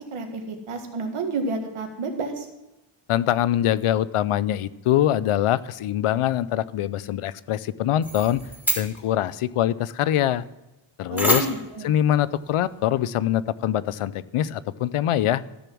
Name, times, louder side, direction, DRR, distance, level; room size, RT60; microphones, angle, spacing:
voice 1, 0.1-2.5 11.1-11.9, right 3 dB, 80° right, 4 dB, 1.9 m, -30 dB
voice 2, 3.1-8.4 8.8-10.5 11.0-11.5 11.8-15.4, left 12 dB, 85° left, 17 dB, 0.6 m, -23 dB
sound 1, 8.0-9.0 11.2-11.7, equal, 5° right, 2.9 m, -26 dB
13.5 x 6.9 x 6.1 m, 0.98 s
cardioid pair, 85°, 50 cm